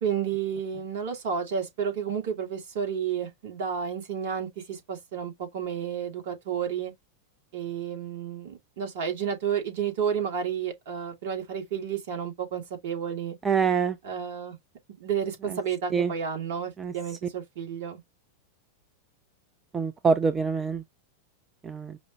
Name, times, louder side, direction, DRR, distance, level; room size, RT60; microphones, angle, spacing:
voice 1, 0.0-6.9 7.5-13.4 14.0-14.6 15.0-18.0, right 7 dB, 50° right, 1.5 m, -31 dB
voice 2, 13.4-14.0 15.5-15.6 15.9-16.1 16.8-16.9 19.7-20.8 21.6-22.0, right 5 dB, 15° right, 0.4 m, -25 dB
5.0 x 2.1 x 2.9 m
figure-of-eight pair, 90°, 0 cm